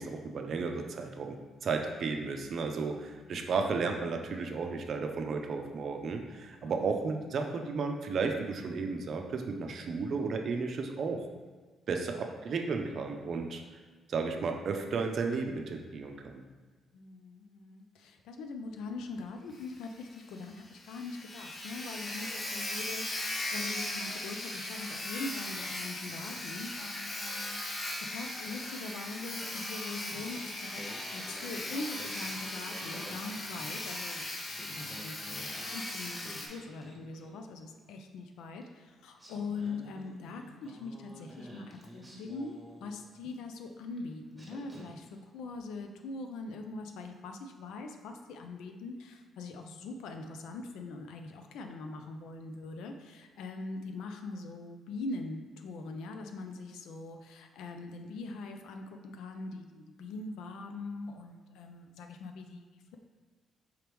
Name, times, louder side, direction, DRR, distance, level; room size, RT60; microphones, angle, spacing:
voice 1, 0.0-1.4 1.6-11.3 11.9-13.6 14.1-16.4, right 4 dB, 60° right, 4 dB, 0.5 m, -33 dB
voice 2, 16.9-30.8 31.1-34.3 34.5-45.1 45.3-63.0, left 3 dB, 85° left, 5 dB, 0.4 m, -42 dB
Sawing, 19.6-19.7 20.0-20.1 20.5-20.6 20.7-36.5, left 1 dB, 35° left, 0.7 m, -38 dB
Singing, 30.1-34.1 34.4-37.6 38.6-38.7 39.2-43.4 44.0-44.1 44.3-45.2, right 1 dB, 10° right, 1.3 m, -51 dB
4.8 x 3.0 x 3.4 m, 1.4 s
cardioid pair, 90°, 0 cm